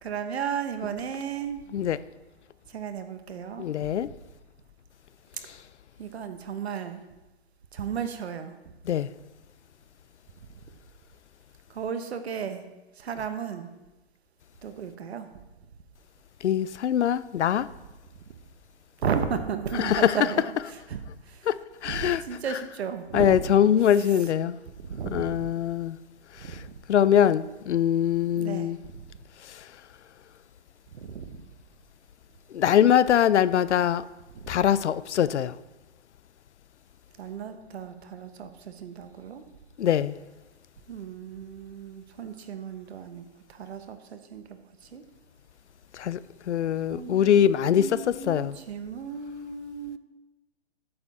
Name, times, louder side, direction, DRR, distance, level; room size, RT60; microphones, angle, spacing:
voice 1, 0.0-1.6 2.7-3.9 6.0-7.0 7.7-8.5 11.7-12.6 13.0-13.7 14.6-15.3 19.0-21.5 21.9-23.4 24.8-25.5 26.4-26.8 28.4-28.7 30.9-31.4 34.4-34.6 37.2-39.4 40.9-45.0 46.9-50.0, right 7 dB, 65° right, 1.1 m, -34 dB
voice 2, 3.6-4.1 8.9-9.1 16.4-17.7 19.8-20.2 21.5-22.2 23.1-24.6 25.1-26.0 26.4-28.8 29.4-29.7 32.5-34.1 34.5-35.6 39.8-40.2 45.9-46.2 46.5-48.6, left 9 dB, 85° left, 0.5 m, -23 dB
8.4 x 7.1 x 4.2 m
hypercardioid pair, 145°, 34 cm